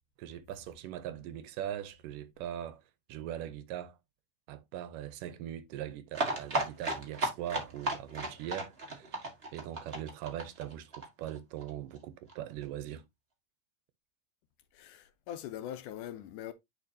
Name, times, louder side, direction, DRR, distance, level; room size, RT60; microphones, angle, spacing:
voice 1, 0.2-2.8 3.1-4.0 4.5-9.3 9.5-13.1, right 11 dB, 85° right, 2.3 m, -41 dB
sound 1, 6.1-11.7 12.0-12.1 12.3-12.4 12.6-12.7, right 2 dB, 45° right, 0.8 m, -34 dB
voice 2, 14.7-16.5, left 11 dB, 80° left, 2.0 m, -42 dB
9.6 x 4.7 x 2.7 m
omnidirectional pair, 3.9 m